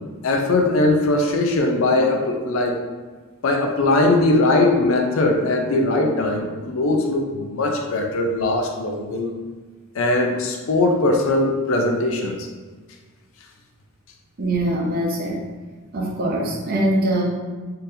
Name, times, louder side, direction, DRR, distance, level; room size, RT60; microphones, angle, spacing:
voice 1, 0.2-2.8 3.4-9.3 9.9-12.5, left 2 dB, 70° left, 2 dB, 0.5 m, -20 dB
voice 2, 14.4-15.5 15.9-17.2, right 1 dB, 45° right, -1 dB, 0.6 m, -22 dB
3.8 x 2.7 x 2.6 m, 1.4 s
head